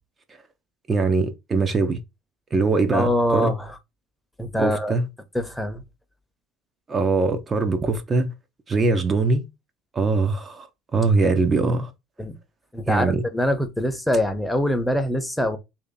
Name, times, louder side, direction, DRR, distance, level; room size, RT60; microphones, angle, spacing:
voice 1, 0.9-2.0 2.5-3.5 4.6-5.0 6.9-8.3 8.7-9.4 9.9-10.7 10.9-11.9 12.9-13.2, right 3 dB, 30° right, 0.7 m, -22 dB
voice 2, 2.9-3.8 4.4-5.0 5.3-5.8 12.2-12.3 12.7-15.6, left 1 dB, 5° left, 0.9 m, -24 dB
2.9 x 2.8 x 3.8 m
hypercardioid pair, 70°, 0 cm